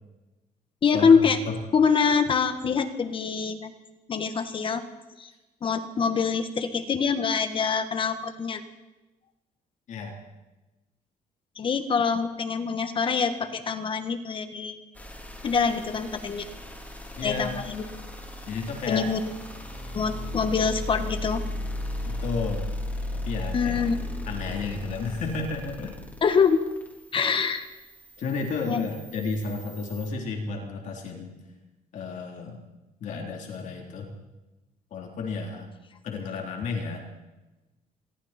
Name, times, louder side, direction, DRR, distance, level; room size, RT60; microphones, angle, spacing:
voice 1, 0.8-1.4 1.7-3.7 4.1-4.8 5.2-5.3 5.6-8.6 11.6-14.8 15.4-16.5 17.2-17.8 18.9-19.2 19.9-21.4 23.5-24.0 26.2-26.6 27.1-27.7 28.7-28.8, left 6 dB, 35° left, 9 dB, 1.6 m, -24 dB
sound 1, 14.9-30.1, left 1 dB, 10° left, 4.0 m, -36 dB
voice 2, 17.2-17.5 18.5-19.1 22.1-22.7 23.1-23.8 24.3-26.0 28.2-31.3 31.9-32.7 33.0-34.1 34.9-35.7 36.0-37.0, left 4 dB, 55° left, 1 dB, 3.6 m, -32 dB
27.5 x 22.5 x 4.4 m, 1.1 s
cardioid pair, 145°, 15 cm